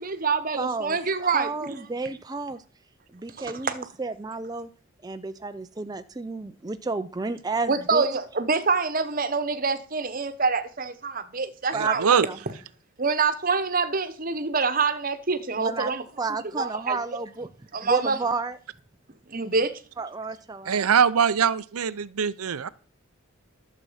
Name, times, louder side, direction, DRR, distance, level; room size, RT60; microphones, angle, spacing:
voice 1, 0.0-1.8 3.4-3.8 7.7-12.1 13.0-16.0 16.6-17.0 17.7-18.2 19.3-19.8, right 4 dB, 40° right, 1.0 m, -26 dB
voice 2, 0.6-2.6 3.1-4.7 5.0-8.0 11.7-12.4 15.6-15.9 16.2-17.5 17.8-18.6 20.0-20.9, right 3 dB, 20° right, 0.4 m, -31 dB
voice 3, 11.7-12.3 20.7-22.7, right 7 dB, 90° right, 0.6 m, -22 dB
12.0 x 7.4 x 5.6 m
head